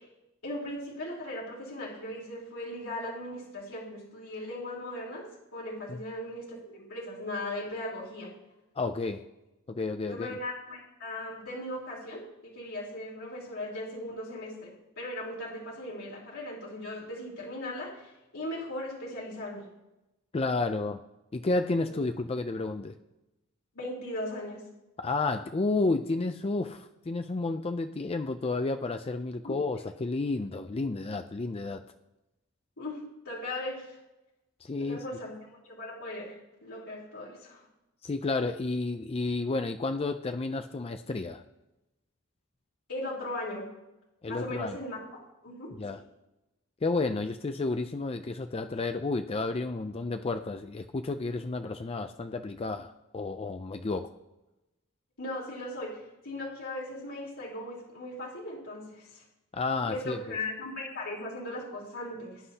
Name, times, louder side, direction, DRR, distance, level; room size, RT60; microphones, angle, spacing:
voice 1, 0.4-5.2 5.5-8.3 10.1-19.7 21.9-22.0 23.7-24.6 29.4-29.6 32.8-34.0 34.8-37.7 42.9-43.7 44.3-45.7 55.2-59.2 59.9-62.4, left 1 dB, 75° left, -6 dB, 3.3 m, -38 dB
voice 2, 8.8-9.2 9.7-10.4 20.3-21.0 21.3-22.9 25.0-31.8 34.6-35.0 38.0-41.4 44.2-44.8 45.8-46.0 46.8-54.1 59.5-60.4, left 3 dB, 30° left, 7 dB, 0.4 m, -31 dB
19.5 x 9.9 x 2.8 m, 0.96 s
head